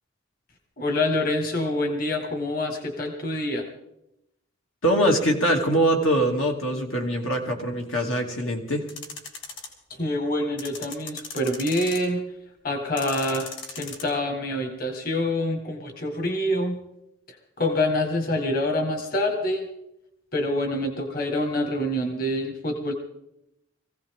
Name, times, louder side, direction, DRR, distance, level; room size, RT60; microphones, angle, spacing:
voice 1, 0.8-3.6 10.0-12.2 12.6-13.5 13.8-16.8 17.3-19.6 20.3-22.9, left 1 dB, 45° left, 4 dB, 1.8 m, -26 dB
voice 2, 4.8-8.9, right 1 dB, 85° left, 1 dB, 2.8 m, -23 dB
sound 1, 8.9-9.7 10.6-12.2 13.0-14.0, left 4 dB, 60° left, 3.6 m, -37 dB
22.0 x 16.0 x 3.7 m, 0.83 s
head